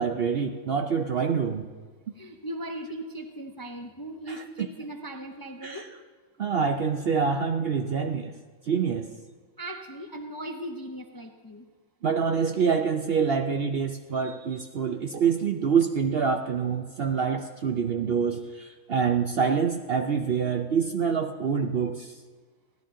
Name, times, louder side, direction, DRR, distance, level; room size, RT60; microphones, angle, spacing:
voice 1, 0.0-1.7 5.6-5.8 6.4-8.3 8.7-9.1 12.0-22.2, right 6 dB, 55° right, 5 dB, 0.7 m, -26 dB
voice 2, 2.1-5.9 9.6-11.7, right 1 dB, 25° left, 4 dB, 0.5 m, -38 dB
16.5 x 11.5 x 3.7 m, 1.4 s
omnidirectional pair, 1.5 m